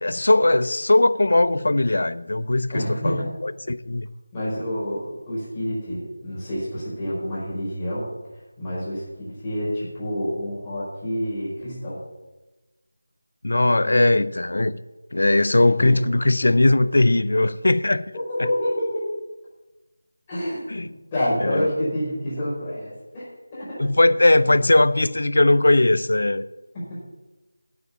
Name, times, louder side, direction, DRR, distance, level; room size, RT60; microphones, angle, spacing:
voice 1, 0.0-4.1 13.4-14.7 15.1-18.0 20.7-20.9 21.4-21.7 23.8-26.4, left 2 dB, 65° left, 15 dB, 0.6 m, -19 dB
voice 2, 2.7-3.3 4.3-8.1 8.6-12.0 15.8-16.1 18.3-19.1 20.3-23.9 26.7-27.0, equal, 15° left, -8 dB, 4.8 m, -28 dB
9.1 x 8.4 x 7.3 m, 1.1 s
figure-of-eight pair, 175°, 0 cm